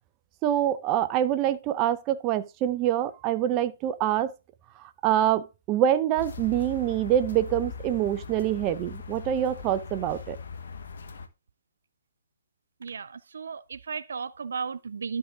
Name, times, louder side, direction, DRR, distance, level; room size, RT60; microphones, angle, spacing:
voice 1, 0.4-4.3 5.0-10.4, right 11 dB, 25° right, 0.6 m, -25 dB
sound 1, 6.2-11.3, left 5 dB, 70° left, 1.2 m, -40 dB
voice 2, 12.8-15.2, right 5 dB, 70° right, 0.5 m, -35 dB
12.0 x 5.5 x 3.6 m
hypercardioid pair, 140°, 0 cm